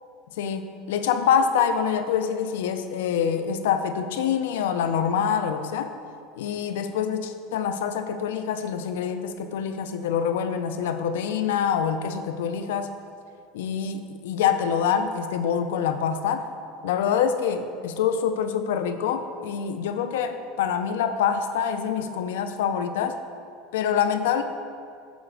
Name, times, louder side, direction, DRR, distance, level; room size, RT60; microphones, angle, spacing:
voice 1, 0.4-5.9 6.4-12.9 13.5-16.5 16.8-23.2 23.7-24.4, left 7 dB, 85° left, 9 dB, 0.5 m, -25 dB
7.2 x 4.3 x 6.3 m, 2.3 s
supercardioid pair, 135°, 0 cm